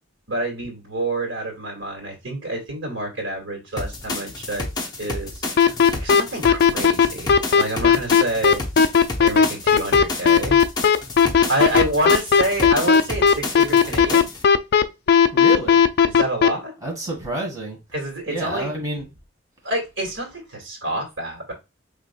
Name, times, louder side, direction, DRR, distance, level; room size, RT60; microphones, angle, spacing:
voice 1, 0.3-4.7 5.0-5.7 6.0-8.6 9.2-10.6 11.5-14.3 16.0-16.8 17.9-18.7 19.6-21.5, right 1 dB, 75° right, 1 dB, 2.1 m, -27 dB
sound 1, 3.8-14.4, left 2 dB, 20° left, 0.8 m, -31 dB
sound 2, 5.6-16.5, left 6 dB, 55° left, 0.3 m, -15 dB
voice 2, 15.3-15.8 16.8-17.8 18.3-19.0, right 1 dB, 20° right, -1 dB, 1.7 m, -28 dB
4.7 x 3.3 x 2.2 m, 0.25 s
head